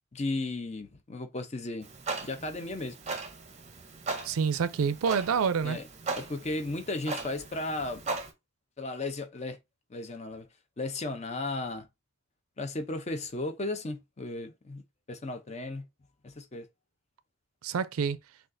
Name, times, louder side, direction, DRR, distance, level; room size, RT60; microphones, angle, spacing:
voice 1, 0.1-1.9 2.2-3.0 5.6-5.8 6.1-8.0 8.8-9.6 9.9-10.5 10.8-11.9 12.6-14.8 15.1-15.8 16.2-16.7, left 2 dB, 30° left, 0.6 m, -35 dB
Clock, 1.8-8.3, right 3 dB, 30° right, 0.6 m, -38 dB
voice 2, 4.2-5.8 17.6-18.2, right 6 dB, 85° right, 0.4 m, -27 dB
6.2 x 2.4 x 2.6 m
head